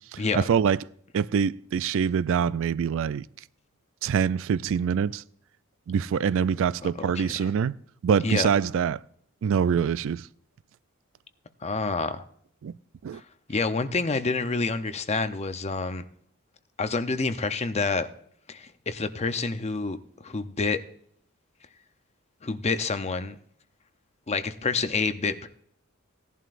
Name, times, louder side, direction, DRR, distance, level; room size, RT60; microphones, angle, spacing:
voice 1, 0.1-0.8 1.1-3.3 4.0-5.2 5.9-7.8 8.0-9.0 9.4-10.2 12.6-12.7 13.0-13.2, right 7 dB, 65° right, 0.3 m, -25 dB
voice 2, 7.0-7.5 8.2-8.5 11.6-12.2 13.5-16.0 16.8-18.1 18.5-20.0 20.2-20.8 22.4-23.4 24.3-25.5, left 4 dB, 30° left, 0.6 m, -28 dB
17.0 x 11.0 x 2.5 m
head